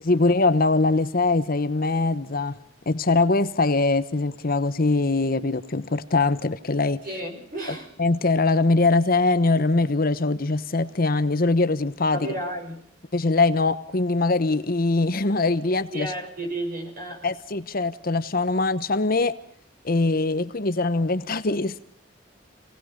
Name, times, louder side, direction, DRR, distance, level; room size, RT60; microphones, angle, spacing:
voice 1, 0.0-2.6 2.9-7.0 8.0-12.3 13.1-16.1 17.2-19.3 19.8-21.7, left 3 dB, 50° left, 12 dB, 1.0 m, -22 dB
voice 2, 7.0-7.9 12.1-12.8 15.9-17.3, right 1 dB, 50° right, 2 dB, 6.3 m, -32 dB
27.0 x 18.5 x 5.2 m, 0.65 s
head